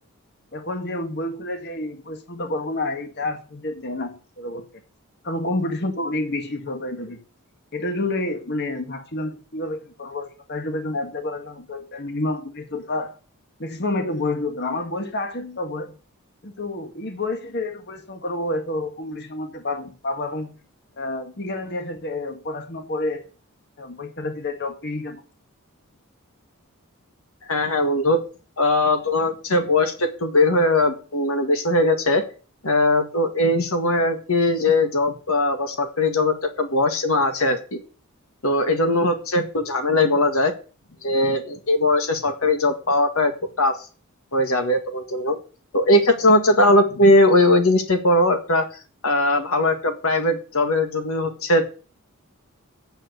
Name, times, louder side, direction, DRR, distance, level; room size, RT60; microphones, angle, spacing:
voice 1, 0.5-4.6 5.2-7.2 7.7-13.1 13.6-15.9 16.4-20.5 21.0-23.2 23.8-25.2, left 2 dB, 50° left, 1.7 m, -29 dB
voice 2, 27.5-28.2 28.6-32.2 32.6-37.8 38.4-40.5 41.0-43.3 43.6-43.8 44.3-45.3 45.7-48.7 49.0-51.6, left 1 dB, 70° left, 1.7 m, -20 dB
9.0 x 7.0 x 8.0 m
head